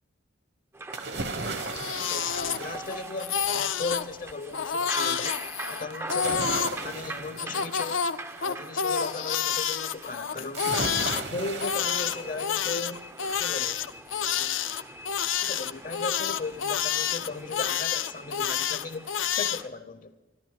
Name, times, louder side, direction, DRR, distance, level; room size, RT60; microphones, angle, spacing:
sound 1, 0.7-19.7, right 1 dB, 15° right, 0.5 m, -43 dB
sound 2, 0.9-3.7 6.1-8.7 10.5-12.8 13.2-13.3, right 3 dB, 55° right, 1.1 m, -36 dB
Crying sobbing, 1.5-2.9 3.2-4.1 4.5-6.8 7.4-11.2 11.6-19.6, left 8 dB, 80° left, 0.6 m, -29 dB
voice 1, 2.0-5.4 5.7-8.0 8.4-10.7 11.1-13.1 13.4-13.9 14.2-14.6 15.4-20.1, left 3 dB, 40° left, 0.7 m, -37 dB
14.0 x 12.5 x 6.5 m
head